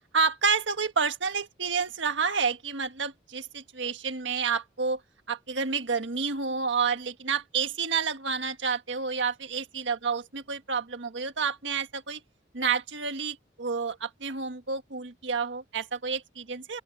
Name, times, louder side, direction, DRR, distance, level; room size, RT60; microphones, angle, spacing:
voice 1, 0.1-5.0 5.3-12.2 12.5-16.8, right 5 dB, 85° right, 1.6 m, -29 dB
open air
head